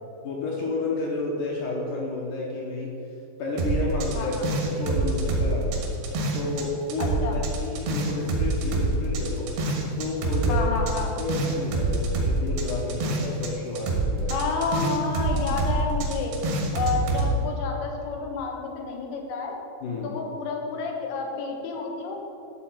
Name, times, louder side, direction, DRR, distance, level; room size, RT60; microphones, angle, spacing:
voice 1, 0.2-2.9 3.4-5.9 6.3-9.5 10.0-14.3 19.8-20.1, left 2 dB, 70° left, -3 dB, 2.0 m, -31 dB
sound 1, 3.6-6.6 6.9-13.5 13.7-17.3, right 2 dB, 75° right, 3.4 m, -26 dB
voice 2, 4.2-4.5 7.0-7.4 10.5-11.1 14.3-16.4 16.7-19.6 20.0-22.2, left 4 dB, 90° left, 1 dB, 3.6 m, -30 dB
12.0 x 4.2 x 7.9 m, 2.7 s
omnidirectional pair, 5.1 m